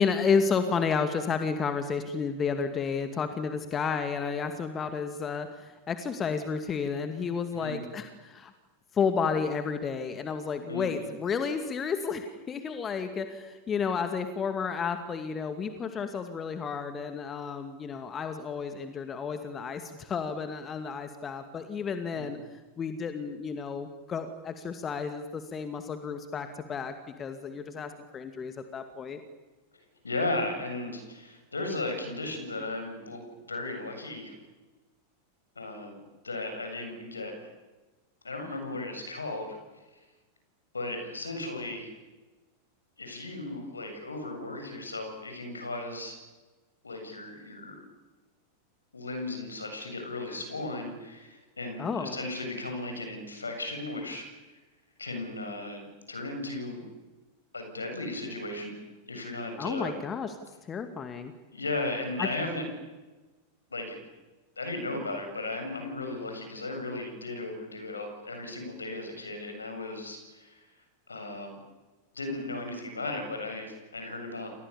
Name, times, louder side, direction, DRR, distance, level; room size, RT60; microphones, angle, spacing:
voice 1, 0.0-8.5 8.9-22.4 22.8-29.2 51.8-52.2 59.6-60.3 60.6-61.3 62.2-62.3, left 5 dB, 25° left, 8 dB, 2.4 m, -31 dB
voice 2, 10.7-11.1 22.1-22.3 30.0-33.2 33.5-34.4 35.6-36.0 36.2-37.5 38.2-39.6 40.7-41.9 43.0-46.2 46.8-47.8 48.9-54.3 55.0-56.9 57.5-59.9 61.5-62.7 63.7-64.0 64.6-70.7 71.1-71.6 72.1-74.5, left 2 dB, 75° left, 5 dB, 7.5 m, -36 dB
29.0 x 28.0 x 7.2 m, 1.2 s
figure-of-eight pair, 90°, 0 cm